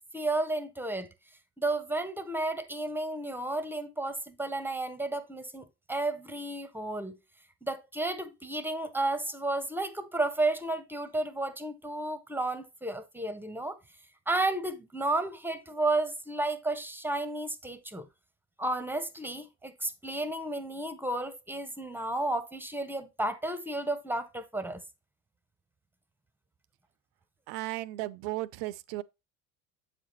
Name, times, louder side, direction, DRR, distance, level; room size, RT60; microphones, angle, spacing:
voice 1, 0.1-1.1 1.6-7.2 7.6-13.8 14.3-18.1 18.6-24.8, right 2 dB, 5° right, 0.7 m, -32 dB
voice 2, 27.5-29.0, right 18 dB, 55° right, 0.5 m, -35 dB
7.7 x 5.0 x 3.0 m
hypercardioid pair, 65°, 47 cm